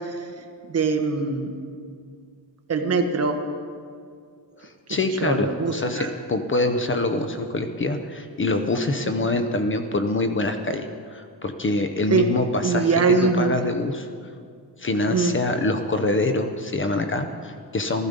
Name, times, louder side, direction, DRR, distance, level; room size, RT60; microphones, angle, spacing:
voice 1, 0.7-1.5 2.7-3.4 4.9-6.1 12.1-12.3 12.6-13.6 15.1-15.4, right 4 dB, 35° right, 5 dB, 1.2 m, -22 dB
voice 2, 4.6-14.1 14.8-18.1, left 2 dB, 30° left, 7 dB, 0.7 m, -25 dB
15.5 x 13.5 x 5.2 m, 2.2 s
wide cardioid pair, 165°, 42 cm